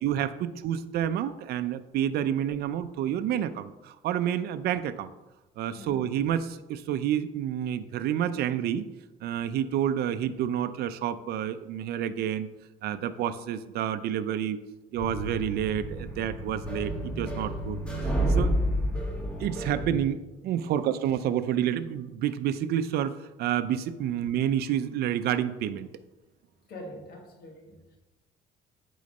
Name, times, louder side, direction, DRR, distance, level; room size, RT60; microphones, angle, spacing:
voice 1, 0.0-5.1 5.6-8.9 9.2-12.5 12.8-14.6 14.9-17.8 18.0-18.5 19.4-20.2 20.4-25.9, right 10 dB, 70° right, 11 dB, 0.5 m, -29 dB
sound 1, 15.0-20.0, equal, 5° left, 1.6 m, -30 dB
voice 2, 26.7-28.0, left 1 dB, 65° left, 1 dB, 1.7 m, -44 dB
8.3 x 3.9 x 5.3 m, 1.0 s
cardioid pair, 110°, 17 cm